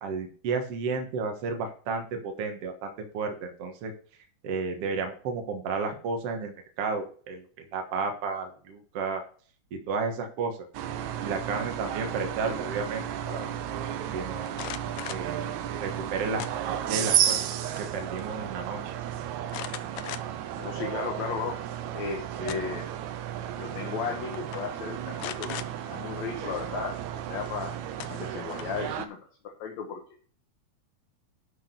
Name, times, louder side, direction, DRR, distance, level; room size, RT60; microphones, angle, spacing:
voice 1, 0.0-3.9 4.4-9.2 9.7-10.6 11.2-13.5 14.1-14.7 15.1-15.5 15.8-17.4 17.8-19.0, right 4 dB, 60° right, 4 dB, 2.3 m, -32 dB
sound 1, 10.7-29.1, right 10 dB, 80° right, 2.1 m, -33 dB
sound 2, 14.5-15.3 16.4-17.0 17.4-17.9 18.2-18.3 19.5-20.5 21.0-21.1 22.2-22.9 23.9-24.0 24.3-24.6 25.2-25.7 27.5-27.6 28.0-28.8, left 13 dB, 90° left, 1.3 m, -39 dB
voice 2, 20.6-21.6 21.9-22.9 23.5-25.6 25.8-27.0 27.3-27.8 28.1-29.2 29.4-30.0, left 6 dB, 70° left, 2 dB, 2.6 m, -35 dB
11.5 x 5.0 x 5.2 m, 0.44 s
omnidirectional pair, 3.3 m